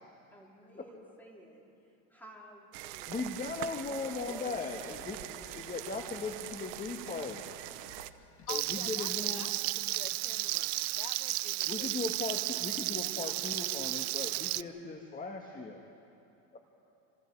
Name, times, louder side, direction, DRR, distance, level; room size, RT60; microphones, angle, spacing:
voice 1, 0.0-1.7 2.1-3.2 3.8-5.6, right 1 dB, 5° left, -3 dB, 4.4 m, -54 dB
sound 1, 2.7-8.1, right 16 dB, 75° right, 1.0 m, -44 dB
voice 2, 3.1-5.2 5.5-7.6 8.5-9.5 11.7-15.8 16.5-16.6, left 4 dB, 20° left, 2 dB, 1.8 m, -38 dB
sound 2, 3.6-10.5, left 4 dB, 55° left, 2.8 m, -60 dB
voice 3, 8.5-12.1, left 15 dB, 85° left, 15 dB, 0.8 m, -48 dB
Frying (food), 8.5-14.6, right 21 dB, 90° right, 0.6 m, -33 dB
28.0 x 26.0 x 4.8 m, 2.7 s
supercardioid pair, 125°, 42 cm